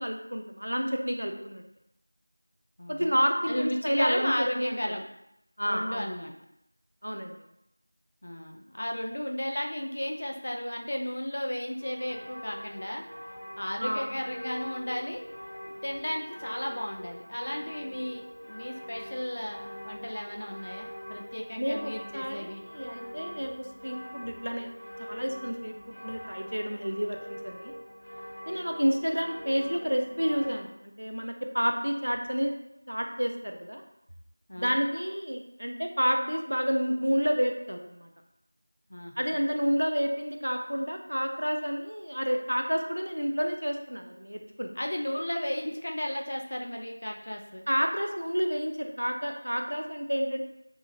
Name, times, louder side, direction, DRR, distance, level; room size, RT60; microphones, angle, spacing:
voice 1, 0.0-1.6 2.9-4.8 5.6-6.1 7.0-7.3 13.8-14.1 21.6-24.7 25.0-27.7 28.5-32.6 32.9-33.8 34.6-38.1 39.2-44.7 47.7-50.4, equal, 70° right, 4 dB, 0.5 m, -30 dB
voice 2, 2.8-3.2 3.5-5.0 5.7-6.3 8.2-13.0 13.6-15.2 15.6-19.6 19.8-22.6 34.5-34.8 38.9-39.4 44.8-47.7, left 1 dB, 35° left, 1 dB, 0.3 m, -34 dB
sound 1, 11.8-30.5, equal, 75° left, 0.9 m, -43 dB
2.7 x 2.4 x 2.6 m, 0.81 s
figure-of-eight pair, 175°, 0 cm